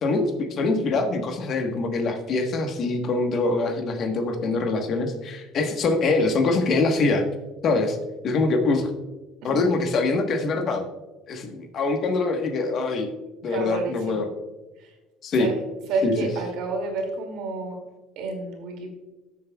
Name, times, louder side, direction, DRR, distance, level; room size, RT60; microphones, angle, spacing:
voice 1, 0.0-7.2 7.6-8.0 8.2-8.9 9.4-10.8 11.3-13.1 13.4-14.3 15.2-15.5 16.0-16.1, left 3 dB, 50° left, 5 dB, 1.2 m, -24 dB
voice 2, 13.5-14.3 14.8-14.9 15.4-15.6 15.9-17.8 18.2-18.9, right 3 dB, 70° right, 2 dB, 2.4 m, -29 dB
13.5 x 7.3 x 2.3 m, 1.1 s
supercardioid pair, 110°, 0 cm